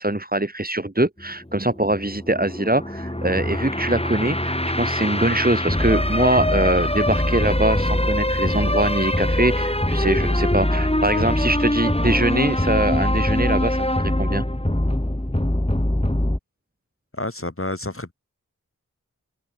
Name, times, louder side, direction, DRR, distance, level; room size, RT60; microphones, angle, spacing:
voice 1, 0.0-14.4, right 1 dB, 25° right, 3.8 m, -23 dB
sound 1, 1.2-16.4, left 1 dB, 20° left, 5.5 m, -23 dB
voice 2, 17.1-18.1, left 2 dB, 40° left, 6.6 m, -29 dB
wide cardioid pair, 45°, 32 cm